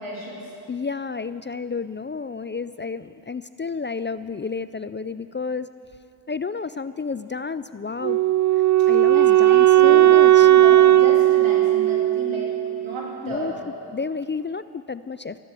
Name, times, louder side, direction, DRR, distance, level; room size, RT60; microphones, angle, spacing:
voice 1, 0.0-0.5 9.1-12.5 12.8-13.7, right 1 dB, 90° right, -3 dB, 3.5 m, -33 dB
voice 2, 0.7-5.7 6.3-8.2 8.9-10.5 13.2-13.5 13.9-15.4, left 5 dB, 25° left, 14 dB, 0.3 m, -31 dB
Wind instrument woodwind instrument, 8.0-13.1, right 13 dB, 40° right, 0.4 m, -16 dB
14.0 x 12.5 x 7.7 m, 2.5 s
cardioid pair, 70°, 47 cm